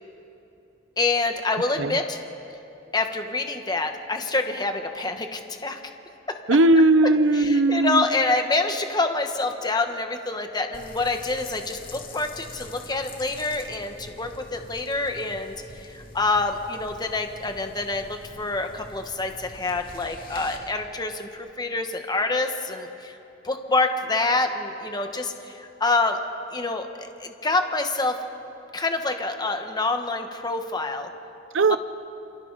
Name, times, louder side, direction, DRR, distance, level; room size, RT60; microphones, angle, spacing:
voice 1, 1.0-2.2 2.9-5.8 7.3-15.5 15.8-21.3 21.6-23.1 23.4-26.2 26.5-28.2 28.7-31.1 31.7-31.8, left 3 dB, 20° left, 5 dB, 1.3 m, -26 dB
voice 2, 6.5-8.1 31.5-31.8, right 2 dB, 70° right, 14 dB, 0.7 m, -18 dB
sound 1, 10.7-20.6, left 2 dB, 45° left, 2.3 m, -44 dB
28.5 x 25.0 x 4.1 m, 2.9 s
head